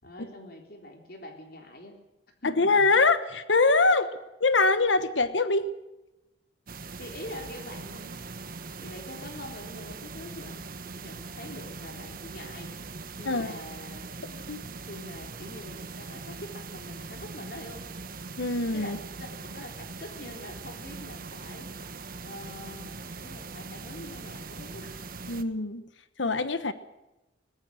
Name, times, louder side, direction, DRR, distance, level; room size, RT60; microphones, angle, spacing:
voice 1, 0.0-2.0 2.4-2.7 7.0-8.3 8.8-12.7 13.2-14.2 14.9-17.9 18.7-19.0 19.4-21.7 22.2-25.1, left 1 dB, 55° left, 3 dB, 3.7 m, -44 dB
voice 2, 2.4-4.1 4.4-5.7 13.2-13.6 14.5-14.7 18.4-19.0 25.3-25.8 26.2-26.7, left 3 dB, 80° left, 12 dB, 1.3 m, -23 dB
sound 1, 6.7-25.4, right 4 dB, 50° right, 1.3 m, -41 dB
21.5 x 20.0 x 6.4 m, 0.98 s
head